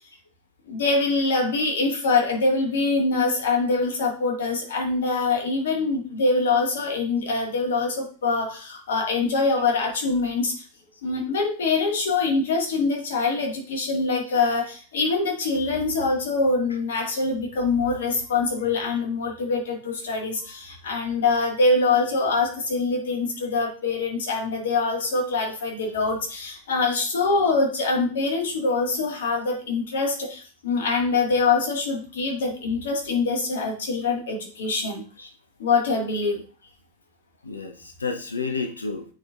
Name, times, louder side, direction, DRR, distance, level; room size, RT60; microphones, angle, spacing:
voice 1, 0.7-10.5 11.0-35.0 35.6-36.4, left 3 dB, 70° left, 1 dB, 1.8 m, -24 dB
voice 2, 37.4-39.0, left 4 dB, 85° left, 6 dB, 0.7 m, -31 dB
8.9 x 4.3 x 2.5 m, 0.38 s
figure-of-eight pair, 95°, 0 cm